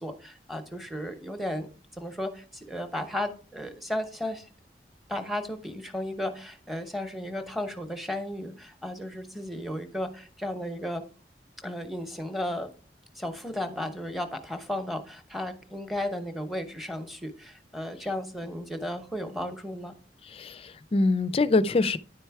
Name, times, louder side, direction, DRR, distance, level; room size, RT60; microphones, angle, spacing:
voice 1, 0.0-1.7 2.0-4.5 5.1-11.0 11.6-12.7 13.1-19.9, left 1 dB, ahead, 0.8 m, -34 dB
voice 2, 20.3-22.0, left 3 dB, 30° left, 0.4 m, -24 dB
10.0 x 4.4 x 4.6 m
head